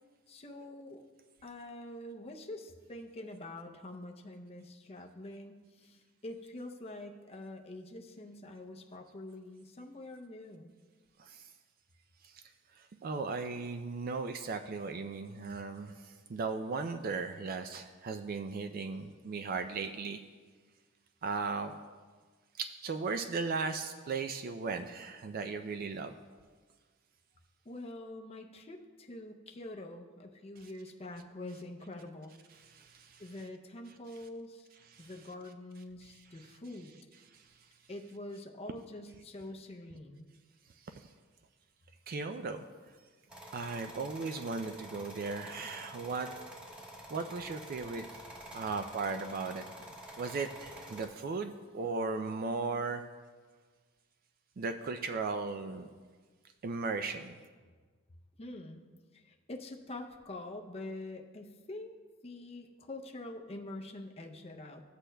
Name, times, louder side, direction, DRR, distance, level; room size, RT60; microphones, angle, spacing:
voice 1, 0.3-1.0 1.4-10.7 27.7-32.3 33.2-34.7 35.0-37.0 37.9-40.3 58.4-58.8 59.1-64.8, left 1 dB, 30° left, 2 dB, 0.5 m, -45 dB
voice 2, 11.2-11.5 12.2-12.4 12.8-20.2 21.2-21.7 22.6-26.1 30.6-30.7 32.6-33.2 34.8-35.1 36.0-36.6 37.3-37.7 40.8-41.1 42.1-42.6 43.5-46.3 47.1-48.0 48.5-49.6 50.2-53.0 54.6-55.9 56.6-57.4, right 4 dB, 45° right, 8 dB, 0.3 m, -37 dB
sound 1, 43.3-51.1, right 1 dB, 5° right, 1.2 m, -48 dB
14.5 x 8.2 x 2.2 m, 1.5 s
head